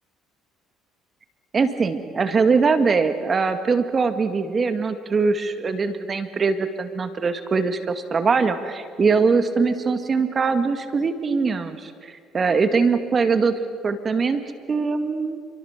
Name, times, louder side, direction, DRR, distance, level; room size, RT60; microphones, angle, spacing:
voice 1, 1.5-13.6 13.8-15.4, right 4 dB, 40° right, 9 dB, 2.1 m, -22 dB
28.0 x 24.0 x 7.4 m, 2.1 s
supercardioid pair, 75°, 0 cm